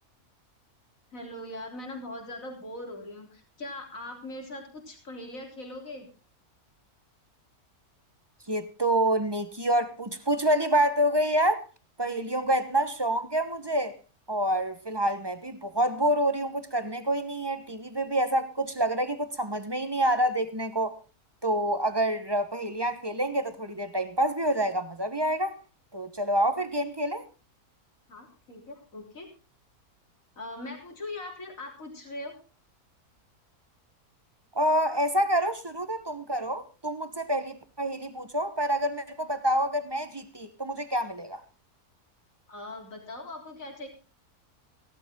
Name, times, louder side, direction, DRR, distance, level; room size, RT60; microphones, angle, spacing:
voice 1, 1.1-6.1 28.1-29.3 30.4-32.3 42.5-43.9, left 1 dB, 60° left, 4.0 m, -40 dB
voice 2, 8.5-11.6 12.0-14.0 14.3-20.9 21.4-25.6 25.9-27.2 34.5-41.4, right 1 dB, 20° right, 1.0 m, -27 dB
16.5 x 13.0 x 3.7 m
omnidirectional pair, 1.6 m